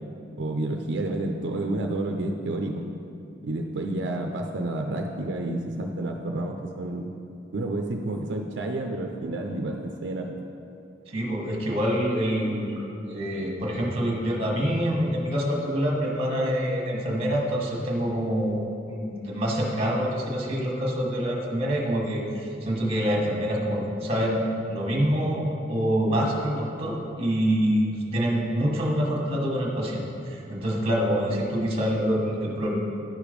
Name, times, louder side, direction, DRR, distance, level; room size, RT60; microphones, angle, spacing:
voice 1, 0.4-2.8 3.4-7.1 7.5-10.3, right 2 dB, 80° right, 2 dB, 0.5 m, -30 dB
voice 2, 11.1-12.8 13.1-24.4 24.7-32.8, equal, 35° right, -1 dB, 1.4 m, -26 dB
11.0 x 5.0 x 5.1 m, 2.7 s
head